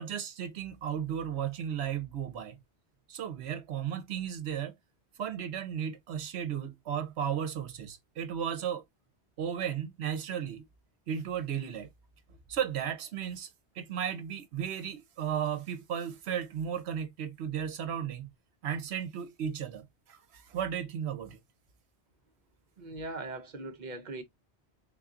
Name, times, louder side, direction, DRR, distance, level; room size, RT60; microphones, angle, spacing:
voice 1, 0.0-2.6 3.1-4.7 5.2-8.8 9.4-10.6 11.1-11.9 12.5-13.5 13.8-18.3 18.6-21.4, right 8 dB, 75° right, 1.0 m, -35 dB
voice 2, 22.8-24.2, right 2 dB, 50° right, 0.8 m, -40 dB
3.7 x 2.3 x 3.6 m
omnidirectional pair, 1.1 m